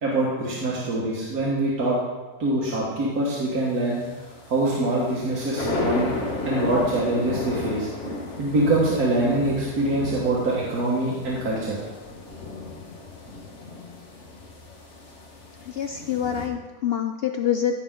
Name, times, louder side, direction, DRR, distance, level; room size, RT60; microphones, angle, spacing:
voice 1, 0.0-2.0 2.4-4.0 4.5-6.1 6.4-7.9 8.4-11.8, right 2 dB, 80° right, -5 dB, 2.0 m, -24 dB
sound 1, 3.4-16.5, left 2 dB, 55° left, 1.6 m, -34 dB
voice 2, 15.6-17.8, left 9 dB, 80° left, 6 dB, 0.5 m, -26 dB
15.0 x 5.9 x 3.7 m, 1.3 s
omnidirectional pair, 1.6 m